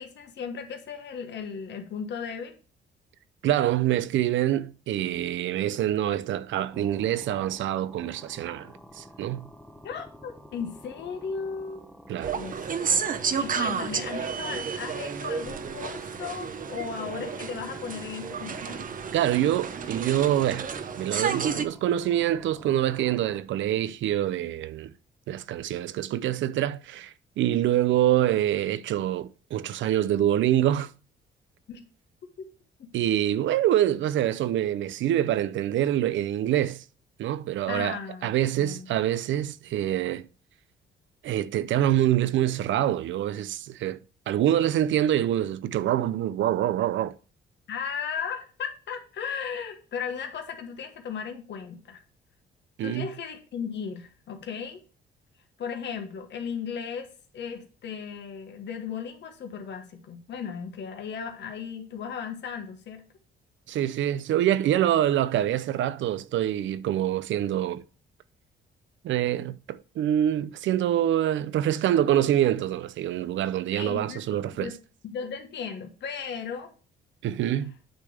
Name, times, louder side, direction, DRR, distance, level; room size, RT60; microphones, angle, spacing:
voice 1, 0.0-2.5 9.8-11.8 12.3-13.0 13.4-18.9 31.7-31.8 32.4-32.5 32.8-32.9 37.7-38.3 38.6-38.9 47.7-52.0 52.8-54.8 55.6-63.0 73.7-74.8 75.0-76.7, left 6 dB, 65° left, 1.6 m, -36 dB
voice 2, 3.4-9.5 12.1-12.3 19.1-20.7 21.0-24.9 25.3-30.9 32.9-36.8 37.2-40.3 41.2-44.0 44.3-47.1 52.8-53.1 63.7-67.8 69.0-74.7 77.2-77.7, right 12 dB, 70° right, 0.5 m, -25 dB
sound 1, 6.7-23.4, equal, ahead, 0.9 m, -49 dB
sound 2, 12.2-21.7, right 6 dB, 45° right, 0.8 m, -31 dB
8.8 x 3.4 x 6.6 m
cardioid pair, 90°, 20 cm